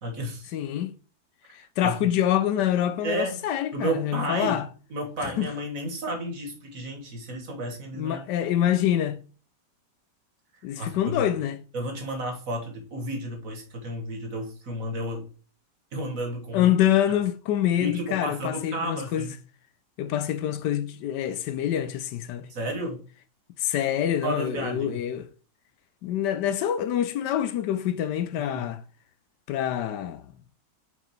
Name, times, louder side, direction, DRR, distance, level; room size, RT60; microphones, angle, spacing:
voice 1, 0.0-0.5 1.8-2.1 3.0-3.4 3.7-4.6 4.9-8.2 10.8-11.3 11.7-15.3 15.9-16.7 17.8-19.3 22.5-23.0 24.2-25.0 28.4-28.7, right 1 dB, 50° right, 1.7 m, -32 dB
voice 2, 0.5-0.9 1.5-4.7 5.2-5.5 8.0-9.2 10.6-11.6 16.5-19.3 20.0-22.5 23.6-25.3 26.0-28.8 29.5-30.3, left 11 dB, 80° left, 1.2 m, -26 dB
5.6 x 4.6 x 4.5 m
omnidirectional pair, 1.9 m